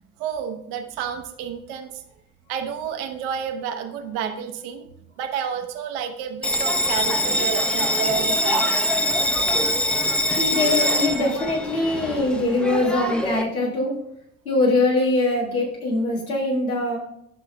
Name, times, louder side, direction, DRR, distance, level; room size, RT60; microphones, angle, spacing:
voice 1, 0.2-1.9 2.5-4.8 5.2-8.7, right 8 dB, 70° right, 5 dB, 1.0 m, -30 dB
Bell, 6.4-13.4, left 1 dB, ahead, 0.7 m, -23 dB
voice 2, 10.3-13.9 14.4-17.0, left 2 dB, 85° left, -4 dB, 1.7 m, -22 dB
12.5 x 6.0 x 2.3 m, 0.78 s
figure-of-eight pair, 50°, 41 cm